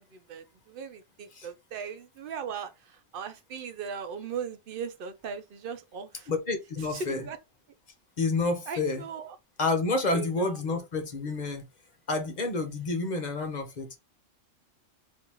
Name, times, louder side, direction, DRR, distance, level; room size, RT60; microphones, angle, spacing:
voice 1, 0.0-6.3 6.8-7.4 8.7-9.4 10.0-10.6, right 6 dB, 55° right, 0.6 m, -38 dB
voice 2, 6.3-7.2 8.2-9.0 9.6-11.6 12.1-14.0, left 3 dB, 40° left, 0.8 m, -29 dB
3.8 x 2.6 x 2.8 m
omnidirectional pair, 1.3 m